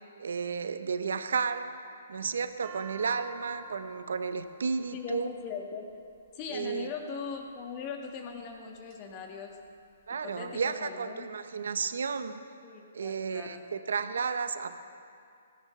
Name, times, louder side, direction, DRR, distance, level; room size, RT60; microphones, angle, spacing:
voice 1, 0.2-1.7 2.1-5.3 6.5-6.9 10.1-12.4 12.9-14.8, right 5 dB, 80° right, 11 dB, 0.8 m, -32 dB
sound 1, 2.2-6.4 7.2-7.7 8.3-9.0 9.3-9.4 9.6-10.4, right 3 dB, 35° right, 1.5 m, -50 dB
voice 2, 4.9-5.9 6.3-9.6 10.2-11.3 12.6-13.6, left 6 dB, 30° left, 2 dB, 1.7 m, -40 dB
17.0 x 17.0 x 3.3 m, 2.4 s
hypercardioid pair, 150°, 0 cm